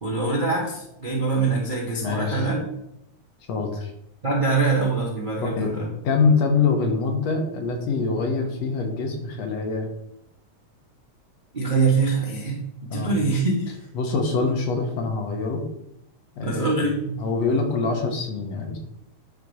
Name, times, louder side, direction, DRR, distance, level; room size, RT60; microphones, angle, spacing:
voice 1, 0.0-2.7 4.2-5.9 11.5-12.6 12.9-13.8 16.4-17.2, right 3 dB, 35° right, -3 dB, 0.8 m, -24 dB
voice 2, 2.0-2.5 3.5-3.9 5.4-5.7 6.0-9.9 12.9-13.1 14.0-15.7 16.4-16.8 17.2-18.8, left 4 dB, 65° left, 3 dB, 2.3 m, -24 dB
9.8 x 5.3 x 4.1 m, 0.80 s
omnidirectional pair, 3.4 m